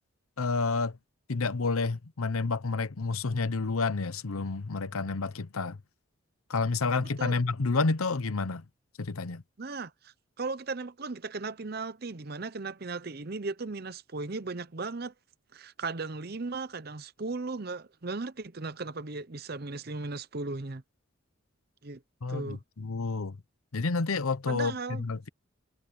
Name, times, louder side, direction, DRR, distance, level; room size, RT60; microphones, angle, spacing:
voice 1, 0.4-1.0 1.3-5.8 6.5-8.6 9.0-9.4 22.2-23.4 23.7-25.3, left 3 dB, 90° left, 0.9 m, -29 dB
voice 2, 6.9-7.4 9.6-15.1 15.5-20.8 21.8-22.0 22.3-22.6 24.5-25.0, right 3 dB, 45° right, 0.8 m, -37 dB
head